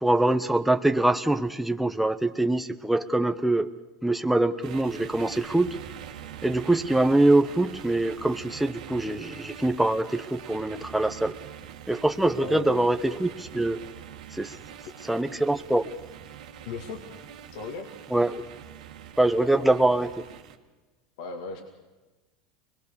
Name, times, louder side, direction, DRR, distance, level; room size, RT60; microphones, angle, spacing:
voice 1, 0.0-3.7 4.0-5.8 6.4-11.4 11.9-13.8 14.3-14.5 15.0-15.9 18.1-18.4 19.2-20.1, right 1 dB, ahead, 7 dB, 0.8 m, -24 dB
sound 1, 4.6-20.6, right 9 dB, 85° right, 1.7 m, -44 dB
voice 2, 12.4-12.9 16.7-17.0 17.5-17.9 19.6-19.8 21.2-21.6, left 3 dB, 75° left, 4 dB, 2.2 m, -36 dB
24.5 x 20.5 x 6.8 m, 1.2 s
supercardioid pair, 110°, 4 cm